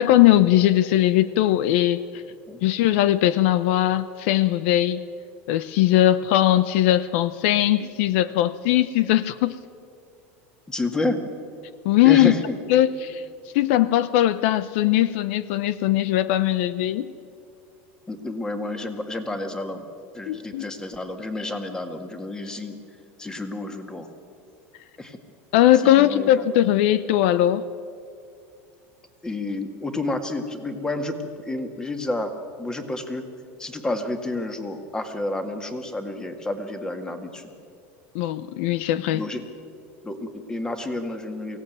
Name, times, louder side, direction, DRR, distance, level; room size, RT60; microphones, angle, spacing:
voice 1, 0.0-2.0 2.6-5.0 5.5-9.6 11.8-12.3 12.7-13.2 13.5-17.1 20.3-20.7 25.5-27.6 38.1-39.2, left 13 dB, 65° left, 16 dB, 0.7 m, -19 dB
voice 2, 10.7-11.2 12.0-12.6 18.1-19.8 20.1-22.8 23.2-24.1 25.0-25.2 25.8-26.3 29.2-32.3 32.6-33.2 33.6-37.5 39.1-39.4 40.0-41.6, left 2 dB, 10° left, 7 dB, 1.9 m, -30 dB
23.5 x 17.0 x 9.3 m, 2.3 s
supercardioid pair, 150°, 7 cm